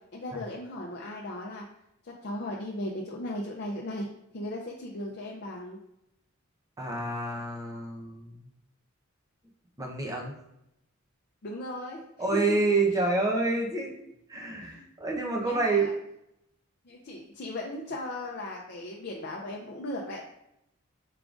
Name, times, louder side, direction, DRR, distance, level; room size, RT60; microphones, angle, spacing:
voice 1, 0.0-1.6 2.0-4.1 4.3-5.8 11.4-12.0 12.3-12.6 14.6-14.9 15.4-15.9 16.8-20.2, left 1 dB, 50° left, -1 dB, 0.5 m, -37 dB
voice 2, 6.8-8.4 9.8-10.3 12.2-15.9, right 3 dB, 15° right, -1 dB, 0.7 m, -28 dB
4.8 x 3.7 x 2.4 m, 0.81 s
head